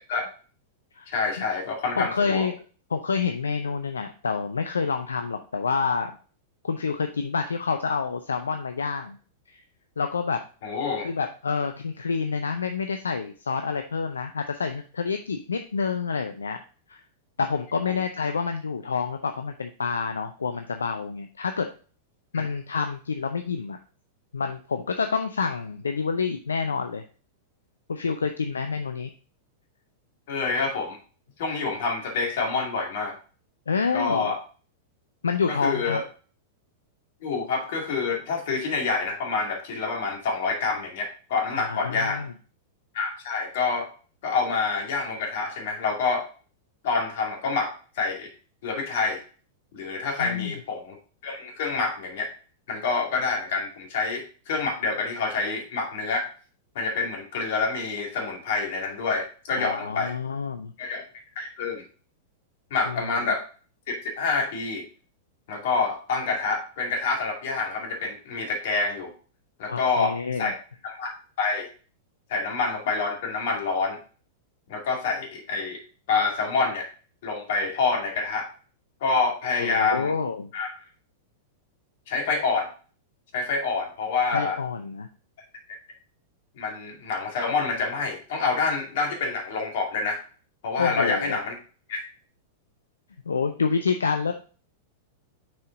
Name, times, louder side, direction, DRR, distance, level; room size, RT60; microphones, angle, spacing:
voice 1, 1.1-2.5 10.6-11.1 17.9-18.0 22.3-22.4 30.3-31.0 31.4-33.1 33.9-34.4 35.5-36.0 37.2-42.2 42.9-43.9 44.2-46.3 46.8-48.3 48.6-49.2 49.7-51.0 51.2-52.3 52.7-56.3 56.7-60.1 60.8-61.0 61.4-61.8 62.7-63.4 63.9-64.8 65.5-69.1 69.6-70.5 70.8-71.7 72.3-74.0 74.7-75.8 76.1-76.9 77.2-78.5 79.0-80.1 80.5-80.7 82.1-82.7 83.3-84.6 86.6-90.2 90.6-91.5 91.9-92.0, left 4 dB, 60° left, 2 dB, 2.2 m, -27 dB
voice 2, 2.0-2.6 2.9-6.1 6.6-9.2 9.5-9.6 10.0-10.4 11.0-16.6 16.9-17.0 17.4-21.7 22.3-23.8 24.3-27.0 27.9-29.1 33.7-34.3 35.2-36.0 41.5-42.3 50.2-50.6 59.6-60.7 62.9-63.1 69.7-70.5 79.6-80.5 84.3-85.1 90.8-91.4 93.3-94.3, left 5 dB, 80° left, 7 dB, 0.5 m, -28 dB
6.3 x 4.7 x 3.8 m, 0.38 s
figure-of-eight pair, 100°, 0 cm